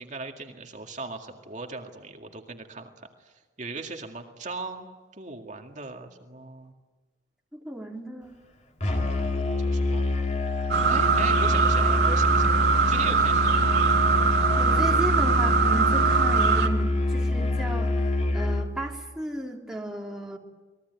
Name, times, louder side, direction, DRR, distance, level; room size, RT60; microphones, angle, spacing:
voice 1, 0.0-6.7 8.9-10.0 10.8-13.8, right 3 dB, 45° right, 3 dB, 2.1 m, -39 dB
voice 2, 7.5-8.4 14.6-17.9 18.3-20.4, right 1 dB, 5° right, 0 dB, 3.4 m, -34 dB
Musical instrument, 8.8-18.7, left 2 dB, 40° left, 3.2 m, -25 dB
sound 1, 10.7-16.7, right 6 dB, 65° right, 2.7 m, -22 dB
29.5 x 21.0 x 9.6 m, 1.3 s
head